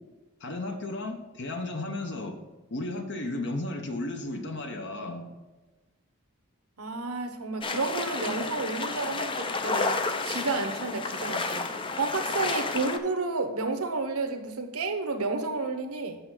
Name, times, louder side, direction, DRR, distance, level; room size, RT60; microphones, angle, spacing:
voice 1, 0.4-2.4 2.7-5.3, left 2 dB, 50° left, 4 dB, 0.8 m, -34 dB
voice 2, 6.8-16.2, right 3 dB, 75° right, 6 dB, 0.9 m, -31 dB
sound 1, 7.6-13.0, left 3 dB, 20° left, 0.5 m, -31 dB
7.1 x 5.6 x 5.6 m, 1.2 s
head